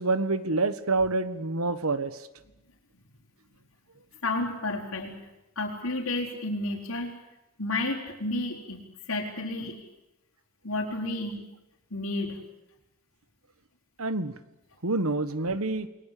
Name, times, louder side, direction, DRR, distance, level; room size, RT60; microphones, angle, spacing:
voice 1, 0.0-2.2 14.0-14.3 14.8-15.9, right 3 dB, 90° right, 15 dB, 1.6 m, -27 dB
voice 2, 4.2-5.1 5.5-7.1 7.6-9.8 10.6-11.4 11.9-12.4, left 2 dB, 80° left, -4 dB, 4.7 m, -31 dB
29.0 x 22.0 x 8.6 m, 0.94 s
head